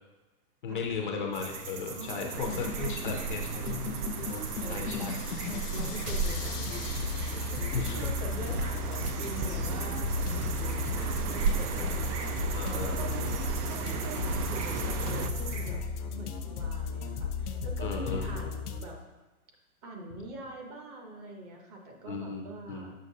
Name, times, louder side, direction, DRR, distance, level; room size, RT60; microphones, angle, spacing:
voice 1, 0.6-3.6 4.7-5.1 5.7-5.8 7.7-8.0 12.5-13.0 17.8-18.3 22.1-22.4 22.7-22.8, left 5 dB, 35° left, 2 dB, 0.4 m, -35 dB
sound 1, 1.3-15.7, right 4 dB, 50° right, 0.9 m, -41 dB
voice 2, 1.9-3.0 4.2-4.9 5.7-10.1 10.6-13.3 13.7-15.8 16.1-19.0 19.8-22.9, right 2 dB, 25° right, 1 dB, 0.6 m, -44 dB
sound 2, 2.3-18.9, left 6 dB, 80° left, 0.7 m, -35 dB
sound 3, 2.3-15.3, right 6 dB, 80° right, 0.6 m, -35 dB
6.5 x 5.8 x 2.7 m, 1.1 s
hypercardioid pair, 145°, 45 cm